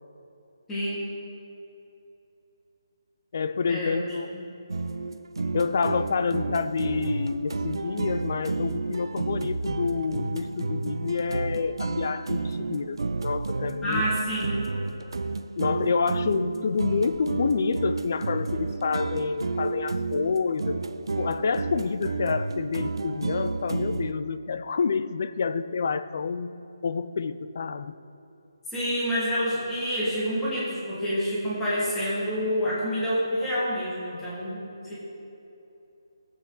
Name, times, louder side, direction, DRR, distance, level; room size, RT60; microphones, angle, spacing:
voice 1, 0.7-1.1 3.7-4.0 13.8-14.6 28.7-35.0, equal, 5° left, -10 dB, 1.9 m, -28 dB
voice 2, 3.3-4.3 5.5-14.0 15.6-20.8 21.2-26.5 26.8-27.9, left 5 dB, 35° left, 12 dB, 0.4 m, -28 dB
sound 1, 4.7-24.1, right 3 dB, 80° right, 0.5 m, -31 dB
14.5 x 8.3 x 4.0 m, 2.9 s
hypercardioid pair, 180°, 2 cm